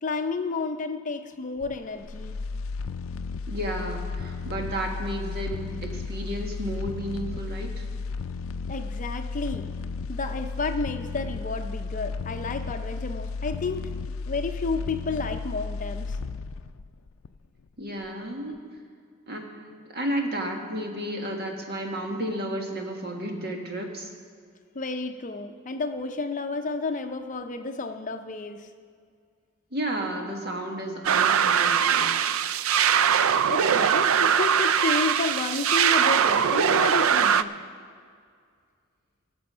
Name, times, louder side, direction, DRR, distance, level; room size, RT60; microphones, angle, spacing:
voice 1, 0.0-2.4 8.7-9.7 10.1-13.9 14.3-16.1 24.8-28.6 33.5-37.5, left 3 dB, 40° left, 7 dB, 0.6 m, -31 dB
sound 1, 1.6-17.7 18.0-18.1, left 4 dB, 80° left, 0.4 m, -34 dB
voice 2, 3.5-7.8 17.8-18.6 19.3-24.1 29.7-32.1, right 1 dB, 50° right, 2 dB, 1.7 m, -32 dB
sound 2, 31.0-37.4, right 8 dB, 90° right, 0.4 m, -21 dB
19.0 x 6.9 x 5.6 m, 2.1 s
head